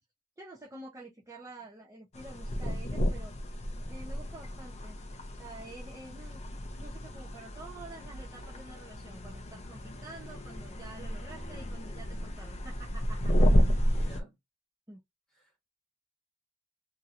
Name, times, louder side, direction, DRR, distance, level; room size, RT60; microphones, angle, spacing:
voice 1, 0.4-3.3 3.9-5.0 5.4-6.4 6.8-13.5 14.9-15.0, right 2 dB, 15° right, 0.7 m, -48 dB
sound 1, 2.1-14.2, equal, 30° left, 0.5 m, -31 dB
voice 2, 13.9-14.4 15.3-15.7, equal, ahead, 1.4 m, -53 dB
2.9 x 2.7 x 2.5 m
head